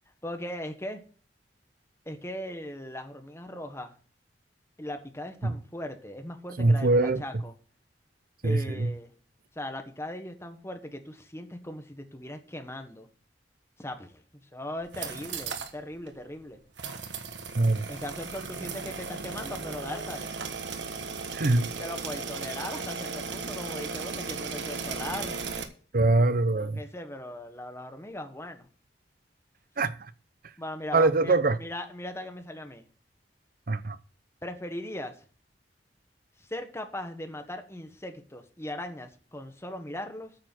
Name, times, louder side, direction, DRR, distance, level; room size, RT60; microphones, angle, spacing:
voice 1, 0.2-1.0 2.0-3.9 4.8-7.5 8.4-9.1 9.5-13.1 13.8-16.6 17.9-20.3 21.8-25.4 26.6-28.7 30.6-32.8 34.4-35.2 36.4-40.3, left 1 dB, 15° left, 1.4 m, -39 dB
voice 2, 6.6-7.2 8.4-8.9 17.5-17.8 21.3-21.7 25.9-26.8 29.8-30.0 30.9-31.6 33.7-34.0, right 2 dB, 55° right, 0.7 m, -23 dB
sound 1, 14.8-15.7 16.1-16.2 16.8-25.6, right 4 dB, 85° right, 1.3 m, -36 dB
9.1 x 6.8 x 7.8 m
head